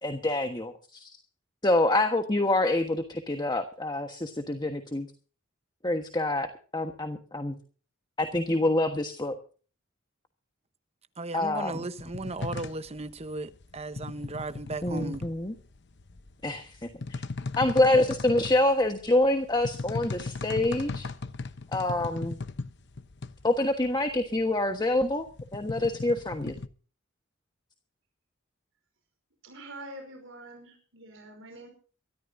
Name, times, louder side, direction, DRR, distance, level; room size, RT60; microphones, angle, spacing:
voice 1, 0.0-1.1 1.6-5.1 5.8-6.5 6.7-7.6 8.2-9.3 11.3-11.8 14.8-15.5 16.4-17.2 17.6-21.1 21.7-22.4 23.4-25.2 25.5-26.5, left 2 dB, 20° left, 1.3 m, -26 dB
voice 2, 11.2-15.2, right 2 dB, 30° right, 1.0 m, -36 dB
sound 1, 12.0-26.7, left 3 dB, 55° left, 0.9 m, -38 dB
voice 3, 29.4-31.7, right 1 dB, 70° right, 5.2 m, -45 dB
23.5 x 13.5 x 2.7 m
head